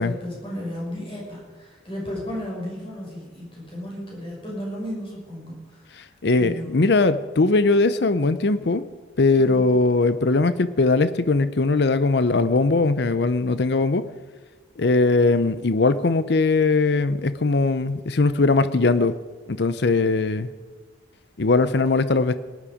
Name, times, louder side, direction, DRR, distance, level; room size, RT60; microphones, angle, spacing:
voice 1, 0.0-6.0 6.4-6.9 9.4-9.8, equal, 30° left, -3 dB, 5.7 m, -34 dB
voice 2, 6.0-8.8 9.2-14.0 14.8-19.1 19.5-20.5 21.4-22.3, left 3 dB, 60° left, 14 dB, 0.6 m, -20 dB
19.0 x 11.5 x 5.0 m, 1.4 s
head